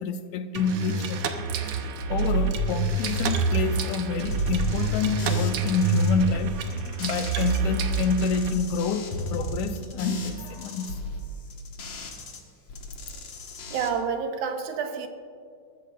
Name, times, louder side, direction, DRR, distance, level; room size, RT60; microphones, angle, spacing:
voice 1, 0.0-1.5 2.1-6.5 7.0-11.0, left 5 dB, 80° left, 2.0 m, -28 dB
sound 1, 0.5-8.5, right 3 dB, 65° right, 1.5 m, -27 dB
sound 2, 4.3-7.6 7.9-12.4 12.7-13.9, left 1 dB, 55° left, 2.4 m, -36 dB
voice 2, 13.7-15.1, right 6 dB, 85° right, 2.4 m, -29 dB
22.5 x 13.5 x 2.5 m
omnidirectional pair, 3.4 m